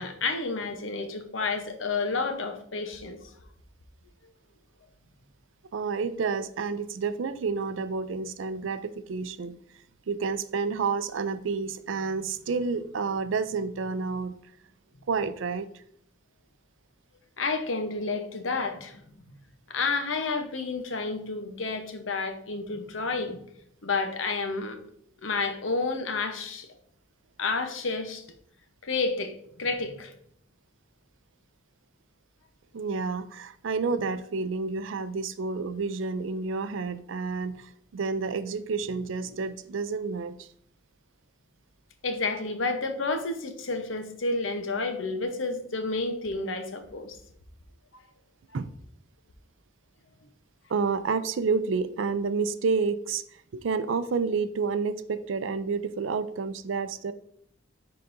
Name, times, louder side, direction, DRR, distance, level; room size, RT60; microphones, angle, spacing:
voice 1, 0.0-3.3 17.4-19.4 19.7-23.4 23.8-24.8 25.2-26.7 27.4-28.2 28.8-30.1 42.0-47.2, left 3 dB, 80° left, 7 dB, 0.8 m, -30 dB
voice 2, 5.7-9.5 10.1-14.4 15.1-15.8 32.7-40.5 48.5-48.7 50.7-53.2 53.5-57.1, right 4 dB, 75° right, 13 dB, 0.4 m, -29 dB
10.0 x 3.9 x 2.6 m, 0.68 s
head